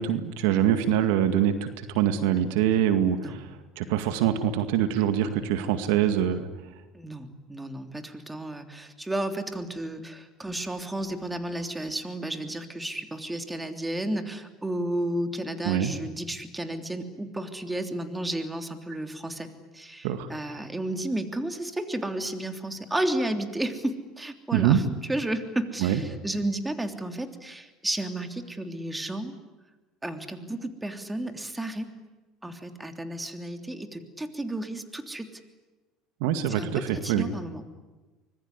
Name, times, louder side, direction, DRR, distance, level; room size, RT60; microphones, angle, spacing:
voice 1, 0.0-3.5 3.8-6.5 15.6-15.9 20.0-20.3 24.5-24.8 25.8-26.0 36.2-37.3, right 10 dB, 75° right, 9 dB, 2.0 m, -24 dB
voice 2, 6.9-19.5 19.7-24.8 25.1-29.3 30.0-31.9 32.4-35.3 36.5-37.6, right 1 dB, 10° right, 7 dB, 3.2 m, -32 dB
25.5 x 21.5 x 9.9 m, 1.2 s
hypercardioid pair, 85°, 0 cm